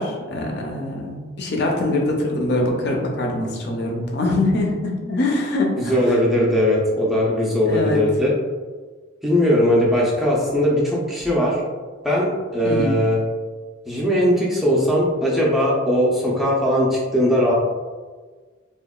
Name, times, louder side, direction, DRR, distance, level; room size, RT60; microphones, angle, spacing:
voice 1, 0.0-6.2 7.6-8.0 12.6-13.0, left 2 dB, 55° left, 0 dB, 0.5 m, -23 dB
voice 2, 5.9-8.3 9.2-11.6 12.0-13.2 13.9-17.5, equal, ahead, -5 dB, 0.4 m, -19 dB
2.8 x 2.1 x 2.3 m, 1.4 s
head